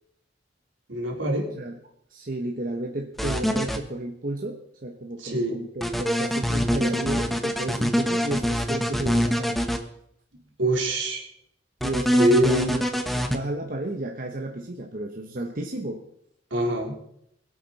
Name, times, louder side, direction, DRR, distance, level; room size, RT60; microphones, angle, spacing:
voice 1, 0.9-1.5 5.2-5.5 10.6-11.2 12.2-12.8 16.5-16.9, right 1 dB, 75° right, -1 dB, 3.6 m, -23 dB
voice 2, 2.1-9.6 11.8-12.8 13.1-16.0, right 1 dB, 45° right, 2 dB, 1.0 m, -32 dB
sound 1, 3.2-3.8 5.8-9.8 11.8-13.4, equal, ahead, 0.9 m, -24 dB
22.0 x 8.3 x 4.1 m, 0.74 s
head